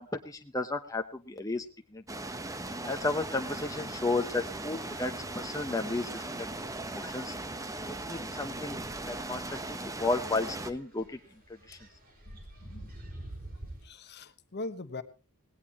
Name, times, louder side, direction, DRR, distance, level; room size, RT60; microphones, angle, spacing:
voice 1, 0.0-1.7 1.9-2.2 2.8-6.5 6.9-7.3 7.9-8.8 9.1-11.1 11.7-11.8, left 3 dB, 15° left, 5 dB, 0.8 m, -33 dB
sound 1, 2.1-10.7, right 2 dB, 15° right, 0.9 m, -38 dB
sound 2, 10.9-13.9, right 1 dB, 40° right, 5.1 m, -50 dB
voice 2, 12.3-12.9 13.8-15.0, left 2 dB, 50° left, 11 dB, 1.1 m, -42 dB
18.5 x 17.5 x 3.0 m, 0.32 s
head